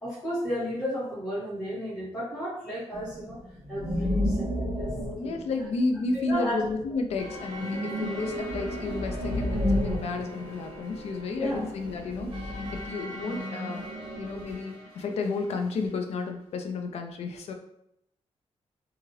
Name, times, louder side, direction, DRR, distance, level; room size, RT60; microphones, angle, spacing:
voice 1, 0.0-3.4 3.7-4.9 5.2-5.4 6.1-6.7 11.3-11.6, equal, 5° right, -13 dB, 1.5 m, -33 dB
sound 1, 2.9-6.5 7.0-11.1 11.4-14.5, left 1 dB, 30° right, 0.6 m, -32 dB
voice 2, 5.2-13.8 14.2-17.5, left 3 dB, 70° left, 5 dB, 0.4 m, -32 dB
sound 2, 7.2-16.0, equal, 55° right, 1.2 m, -43 dB
2.7 x 2.4 x 3.1 m, 0.76 s
wide cardioid pair, 175°, 11 cm